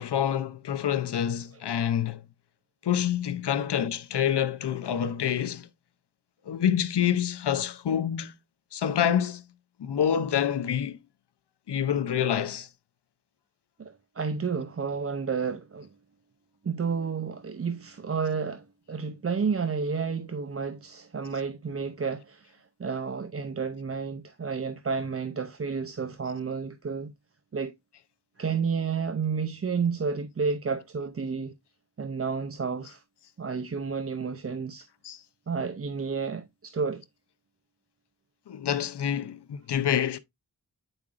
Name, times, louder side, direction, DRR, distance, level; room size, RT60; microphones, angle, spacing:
voice 1, 0.0-2.2 2.8-5.7 6.5-8.3 8.7-9.4 9.8-11.0 11.7-12.7 35.0-35.2 38.5-40.2, left 9 dB, 85° left, 0.6 m, -27 dB
voice 2, 13.8-15.9 16.6-27.1 27.5-27.7 28.4-31.5 32.0-33.0 33.4-34.9 35.5-37.0, right 5 dB, 35° right, 0.6 m, -31 dB
8.8 x 4.8 x 2.4 m
wide cardioid pair, 75°, 39 cm